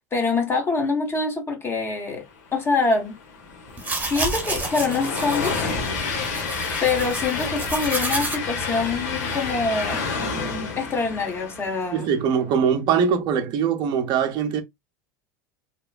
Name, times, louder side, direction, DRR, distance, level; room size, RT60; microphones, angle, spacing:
voice 1, 0.0-2.2 2.5-3.1 4.1-5.6 6.8-10.1 10.8-12.1, left 4 dB, 25° left, 1.1 m, -25 dB
Train, 2.7-12.1, left 4 dB, 65° left, 1.0 m, -30 dB
sound 1, 3.7-8.4, right 2 dB, 15° right, 1.1 m, -30 dB
voice 2, 11.9-14.6, right 7 dB, 50° right, 0.7 m, -22 dB
2.9 x 2.1 x 2.4 m
hypercardioid pair, 85°, 10 cm